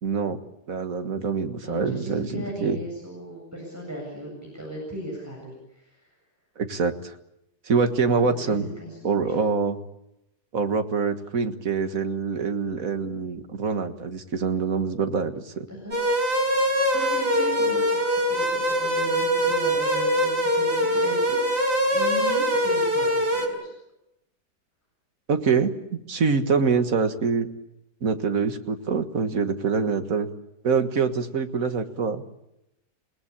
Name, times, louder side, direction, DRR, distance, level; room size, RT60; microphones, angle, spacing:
voice 1, 0.0-0.4 0.7-2.8 6.6-7.1 7.7-8.7 9.0-9.8 10.5-15.7 25.3-27.5 28.0-30.3 30.6-32.2, right 5 dB, 55° right, 7 dB, 2.0 m, -25 dB
voice 2, 1.6-6.1 8.2-9.0 15.7-15.9 16.9-23.7, equal, 10° right, -2 dB, 7.8 m, -37 dB
sound 1, 15.9-23.5, equal, 90° right, 5.4 m, -23 dB
28.5 x 18.5 x 8.6 m, 0.87 s
omnidirectional pair, 1.8 m